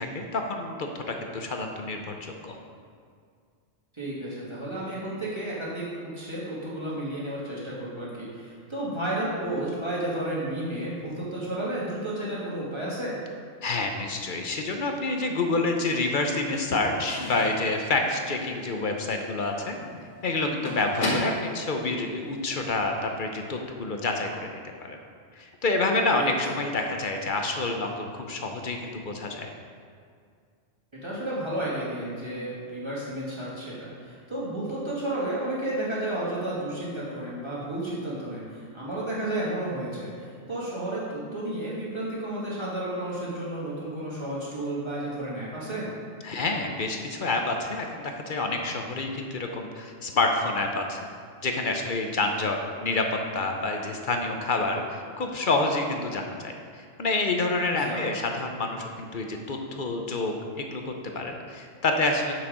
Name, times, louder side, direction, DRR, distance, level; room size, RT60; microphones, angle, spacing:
voice 1, 0.0-2.6 13.6-19.8 20.2-25.0 25.4-29.5 46.2-51.1 51.4-53.1 53.3-62.3, left 3 dB, 45° left, 3 dB, 0.8 m, -28 dB
voice 2, 3.9-13.2 26.1-26.3 31.0-45.9 57.7-58.1, right 1 dB, 20° right, -8 dB, 2.2 m, -32 dB
Slam / Squeak / Wood, 14.8-15.6 15.9-22.7, left 2 dB, 65° left, 1.5 m, -36 dB
7.3 x 6.1 x 5.0 m, 2.2 s
omnidirectional pair, 1.3 m